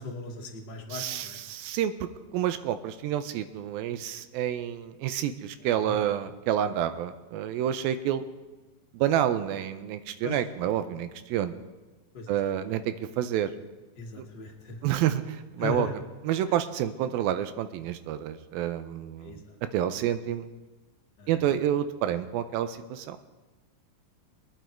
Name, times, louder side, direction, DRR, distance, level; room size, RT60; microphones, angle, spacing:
voice 1, 0.0-1.4 5.8-6.0 10.2-10.4 12.1-12.3 14.0-14.8 15.6-15.9 19.2-19.6 21.2-21.6, left 3 dB, 40° left, 0 dB, 1.8 m, -37 dB
voice 2, 0.9-8.2 8.9-11.5 12.3-13.5 14.2-14.3 14.8-15.9 16.2-19.4 19.7-20.5 21.3-23.2, right 11 dB, 85° right, 11 dB, 2.5 m, -29 dB
23.0 x 9.4 x 4.5 m, 1.2 s
omnidirectional pair, 4.2 m